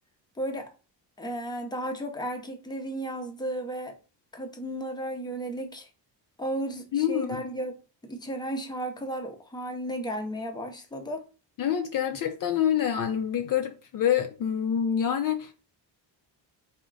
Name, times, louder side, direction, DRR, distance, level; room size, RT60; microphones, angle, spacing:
voice 1, 0.4-0.7 1.2-4.0 4.3-5.9 6.4-7.7 8.0-11.2, right 1 dB, 10° left, 0.7 m, -34 dB
voice 2, 6.9-7.4 11.6-15.5, left 9 dB, 50° left, 0.5 m, -26 dB
3.6 x 2.1 x 3.8 m
cardioid pair, 105°, 43 cm